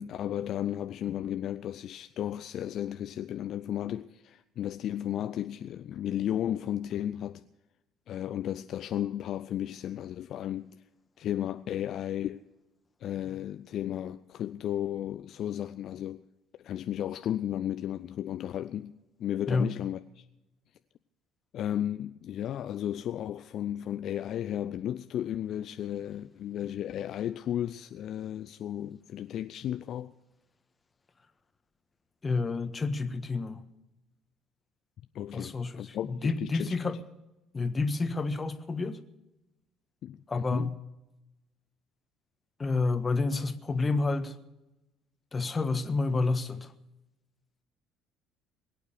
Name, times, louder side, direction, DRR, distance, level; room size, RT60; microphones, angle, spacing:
voice 1, 0.0-7.5 8.1-10.8 11.2-12.4 13.0-16.2 16.6-18.9 19.2-20.2 21.5-30.1 35.1-36.8 40.0-40.8, left 11 dB, 50° left, 0.4 m, -34 dB
voice 2, 32.2-33.6 35.3-37.0 37.5-39.0 40.3-40.7 42.6-44.3 45.3-46.7, left 3 dB, 25° left, 1.4 m, -29 dB
22.0 x 9.0 x 6.7 m
figure-of-eight pair, 55°, 0 cm